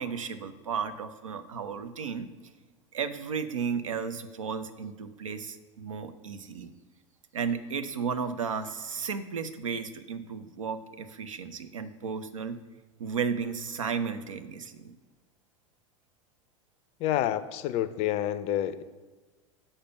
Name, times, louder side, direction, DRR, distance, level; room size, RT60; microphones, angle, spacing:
voice 1, 0.0-2.3 2.9-6.7 7.3-12.6 13.0-14.9, right 6 dB, 75° right, 10 dB, 0.7 m, -34 dB
voice 2, 17.0-18.8, left 12 dB, 40° left, 14 dB, 0.4 m, -28 dB
6.6 x 5.6 x 6.9 m, 1.3 s
figure-of-eight pair, 85°, 17 cm